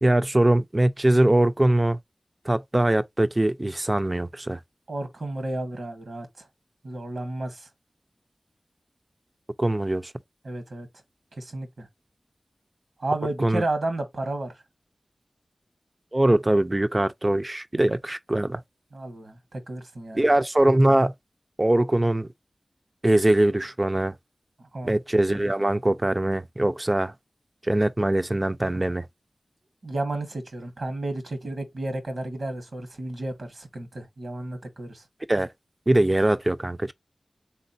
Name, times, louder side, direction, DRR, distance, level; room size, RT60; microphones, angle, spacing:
voice 1, 0.0-2.0 2.5-4.6 9.6-10.1 13.4-13.6 16.1-18.6 20.1-21.1 21.6-22.3 23.0-24.1 24.8-27.1 27.6-29.1 35.3-35.5 35.9-36.9, right 1 dB, 30° right, 0.5 m, -22 dB
voice 2, 4.9-6.3 6.8-7.7 10.4-10.9 11.4-11.9 13.0-14.5 18.9-20.2 24.7-24.9 29.8-35.0, right 2 dB, 75° right, 1.3 m, -32 dB
4.1 x 3.7 x 2.7 m
cardioid pair, 40°, 0 cm